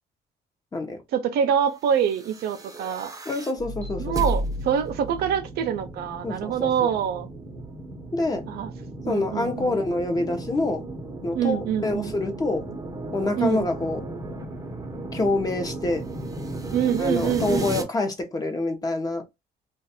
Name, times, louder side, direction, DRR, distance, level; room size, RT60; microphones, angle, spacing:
voice 1, 1.1-3.1 4.0-7.3 8.5-8.7 9.0-9.8 11.3-12.1 13.4-13.7 16.7-17.7, right 8 dB, 70° right, 0.6 m, -25 dB
sound 1, 2.1-17.8, right 1 dB, 20° right, 0.8 m, -34 dB
voice 2, 3.3-4.1 6.2-6.9 8.1-8.4 9.1-10.8 11.2-12.6 13.1-14.0 15.1-16.0 17.0-19.2, left 2 dB, 20° left, 0.8 m, -26 dB
2.5 x 2.3 x 4.1 m
cardioid pair, 110°, 17 cm